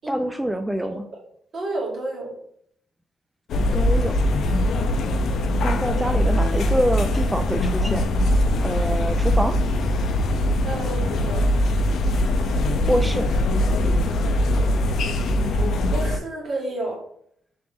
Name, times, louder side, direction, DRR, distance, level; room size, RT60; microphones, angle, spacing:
voice 1, 0.1-1.1 3.7-4.2 5.6-8.1 8.6-9.6 12.9-13.3, equal, 5° right, 6 dB, 0.3 m, -25 dB
voice 2, 1.5-2.3 10.6-11.5 15.9-17.0, right 2 dB, 50° right, -2 dB, 1.7 m, -30 dB
sound 1, 3.5-16.2, left 1 dB, 65° left, 0.5 m, -21 dB
3.7 x 3.3 x 3.5 m, 0.68 s
cardioid pair, 90°, 0 cm